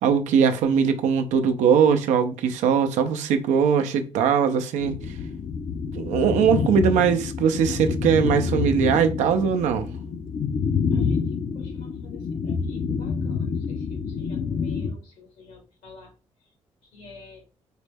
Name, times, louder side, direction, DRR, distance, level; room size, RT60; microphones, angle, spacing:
voice 1, 0.0-5.0 6.0-9.9, right 7 dB, 85° right, 0.5 m, -21 dB
sound 1, 4.8-14.9, left 5 dB, 60° left, 0.6 m, -27 dB
voice 2, 10.9-11.2 11.5-16.1 16.8-17.4, left 3 dB, 80° left, 1.8 m, -49 dB
4.3 x 2.1 x 3.3 m
supercardioid pair, 60°, 12 cm